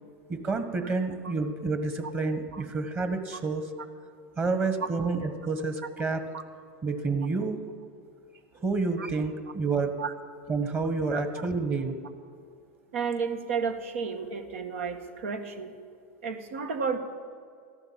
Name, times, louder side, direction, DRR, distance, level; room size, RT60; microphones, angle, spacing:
voice 1, 0.3-3.6 4.4-6.2 6.8-7.6 8.6-9.9 10.5-12.0, right 4 dB, 30° right, 7 dB, 1.5 m, -29 dB
voice 2, 12.9-15.8 16.2-17.0, right 5 dB, 85° right, 6 dB, 1.7 m, -32 dB
14.0 x 12.0 x 8.7 m, 2.2 s
hypercardioid pair, 110°, 7 cm